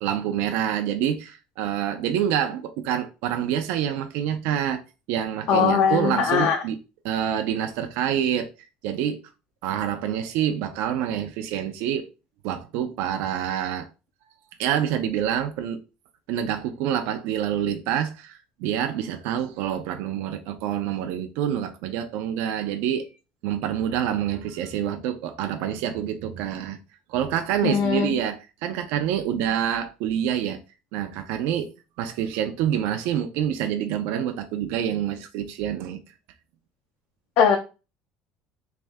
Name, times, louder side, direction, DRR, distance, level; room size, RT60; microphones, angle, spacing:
voice 1, 0.0-4.8 5.1-6.8 7.0-8.5 8.8-9.2 9.6-12.1 12.4-13.9 14.6-15.8 16.3-23.1 23.4-26.8 27.1-30.6 30.9-36.0, right 10 dB, 80° right, 0.4 m, -27 dB
voice 2, 5.5-6.6 27.6-28.1 37.4-37.6, left 7 dB, 60° left, 0.6 m, -20 dB
3.3 x 2.6 x 3.4 m
cardioid pair, 135°, 4 cm